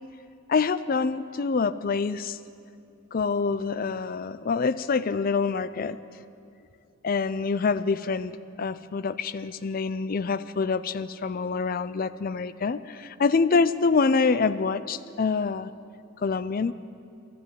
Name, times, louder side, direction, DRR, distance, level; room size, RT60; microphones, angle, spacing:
voice 1, 0.5-2.4 3.1-6.0 7.0-15.7 16.2-16.7, left 4 dB, 40° left, 15 dB, 0.4 m, -26 dB
12.5 x 11.0 x 9.1 m, 2.6 s
head